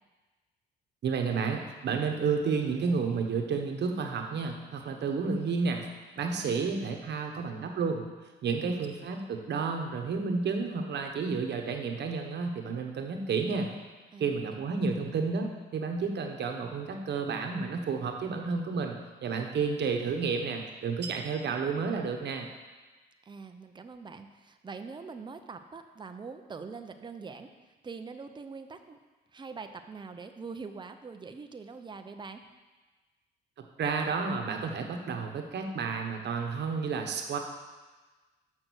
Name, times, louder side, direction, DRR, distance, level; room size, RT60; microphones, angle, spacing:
voice 1, 1.0-5.9 6.2-8.0 8.4-13.7 14.2-18.9 19.2-22.5 33.8-37.4, right 5 dB, 60° right, 3 dB, 1.2 m, -31 dB
voice 2, 6.3-6.8 14.1-14.6 23.3-27.5 27.8-29.0 29.3-32.4, right 4 dB, 25° right, 7 dB, 0.6 m, -44 dB
6.3 x 6.2 x 6.3 m, 1.3 s
cardioid pair, 90°, 20 cm